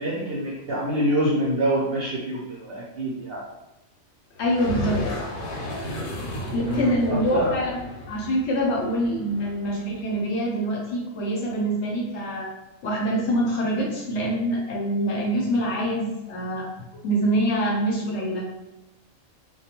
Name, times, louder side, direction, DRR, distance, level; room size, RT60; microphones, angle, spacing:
voice 1, 0.0-3.4 6.7-7.5, right 1 dB, 65° right, -5 dB, 0.6 m, -26 dB
sound 1, 4.4-10.0, left 1 dB, 85° left, 1.1 m, -33 dB
voice 2, 4.4-5.3 6.5-12.5 12.8-16.7 17.0-18.5, equal, 65° left, -3 dB, 0.8 m, -25 dB
2.3 x 2.2 x 2.8 m, 0.97 s
omnidirectional pair, 1.4 m